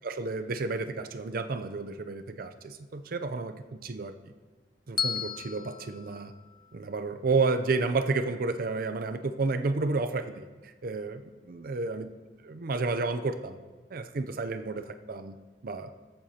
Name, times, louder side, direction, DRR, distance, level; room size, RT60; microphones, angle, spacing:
voice 1, 0.0-4.1 4.9-6.3 6.7-12.1 12.4-13.6 13.9-15.4 15.6-15.9, right 3 dB, 55° right, 9 dB, 0.5 m, -31 dB
Bell, 5.0-7.2, left 7 dB, 25° left, 0.3 m, -35 dB
14.0 x 7.8 x 2.8 m, 1.3 s
head